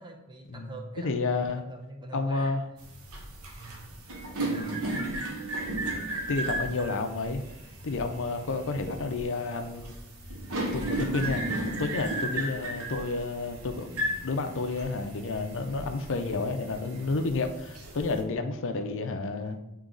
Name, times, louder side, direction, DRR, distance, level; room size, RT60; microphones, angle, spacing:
voice 1, 0.0-2.5 3.6-3.9 4.5-4.8 12.3-12.5 16.2-16.4, right 2 dB, 20° right, 3 dB, 0.7 m, -45 dB
voice 2, 1.0-1.6 2.1-2.6 4.4-4.8 6.3-7.4 7.8-10.0 10.7-11.4 11.8-19.6, left 3 dB, 60° left, 7 dB, 0.6 m, -30 dB
sound 1, 2.8-18.2, right 1 dB, 75° right, 1.0 m, -35 dB
8.5 x 3.0 x 3.8 m, 0.89 s
head